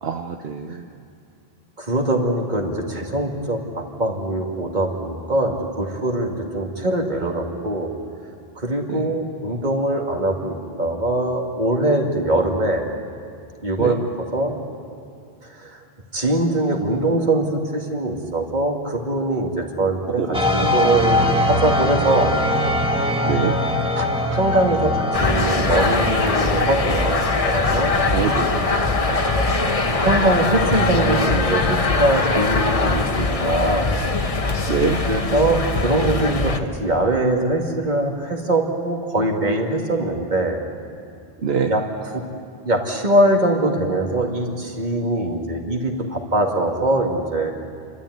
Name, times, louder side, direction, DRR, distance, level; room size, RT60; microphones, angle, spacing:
voice 1, 0.0-0.8 8.9-9.1 13.8-13.9 20.2-20.4 23.3-23.6 28.1-28.7 34.7-35.0 41.4-41.7, right 6 dB, 75° right, 4 dB, 1.1 m, -24 dB
voice 2, 1.8-7.9 8.6-12.9 13.6-14.6 15.5-15.8 16.1-22.3 24.0-28.0 30.0-33.9 35.0-40.6 41.7-42.2 42.6-47.5, right 1 dB, 45° right, 1 dB, 2.4 m, -22 dB
sound 1, 20.3-31.5, left 1 dB, 5° right, 1.6 m, -23 dB
sound 2, 25.1-36.6, left 3 dB, 35° left, 1.0 m, -21 dB
29.0 x 12.5 x 9.4 m, 2.4 s
omnidirectional pair, 1.1 m